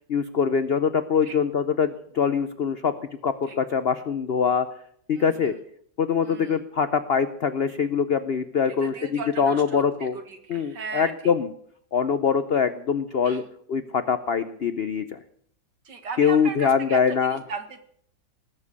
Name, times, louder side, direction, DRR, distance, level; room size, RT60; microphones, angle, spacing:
voice 1, 0.1-2.9 3.2-4.7 5.1-5.5 6.0-10.2 10.5-11.5 11.9-13.4 13.7-15.2 16.2-17.4, left 6 dB, 65° left, 11 dB, 0.6 m, -23 dB
voice 2, 5.1-5.6 6.2-6.6 8.8-11.3 13.2-13.5 15.8-17.8, right 5 dB, 70° right, 7 dB, 2.3 m, -37 dB
19.0 x 7.4 x 8.2 m, 0.66 s
omnidirectional pair, 1.9 m